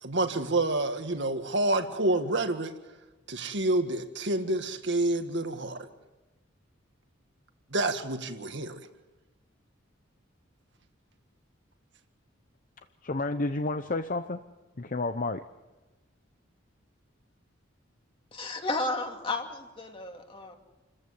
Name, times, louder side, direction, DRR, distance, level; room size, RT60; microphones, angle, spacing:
voice 1, 0.0-2.7 3.3-5.9 7.7-8.8, right 2 dB, 60° right, 7 dB, 1.9 m, -28 dB
voice 2, 13.0-14.4 14.8-15.5, left 2 dB, 40° left, 9 dB, 0.7 m, -30 dB
voice 3, 18.3-20.5, left 2 dB, 25° left, 3 dB, 2.4 m, -33 dB
28.5 x 14.5 x 8.3 m, 1.1 s
head